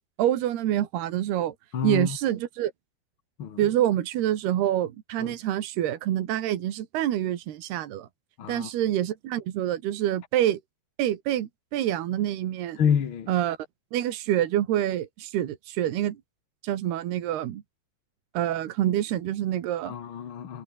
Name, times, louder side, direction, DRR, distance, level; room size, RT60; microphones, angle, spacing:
voice 1, 0.0-1.6 1.8-2.7 3.6-8.1 8.5-10.6 11.0-12.8 13.3-13.6 13.9-16.2 16.6-17.6 18.3-19.9, right 12 dB, 85° right, 3.7 m, -26 dB
voice 2, 1.7-2.2 3.4-3.7 5.2-5.3 8.4-8.7 12.8-13.3 19.9-20.6, left 8 dB, 50° left, 1.7 m, -28 dB
omnidirectional pair, 4.5 m